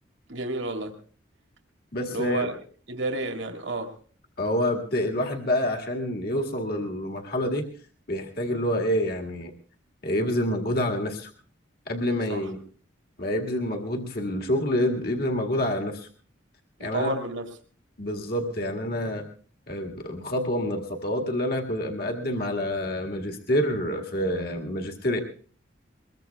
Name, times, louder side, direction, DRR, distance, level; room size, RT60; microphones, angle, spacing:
voice 1, 0.3-0.9 2.1-2.6 2.9-3.9 12.3-12.4 16.8-17.5, right 2 dB, 75° right, 3 dB, 2.2 m, -30 dB
voice 2, 1.9-2.5 4.4-7.7 8.1-9.5 10.0-11.3 11.9-12.6 13.2-16.1 16.8-17.1 18.0-19.2 19.7-25.2, left 1 dB, 50° left, 1 dB, 1.9 m, -27 dB
23.0 x 21.5 x 2.3 m, 0.43 s
head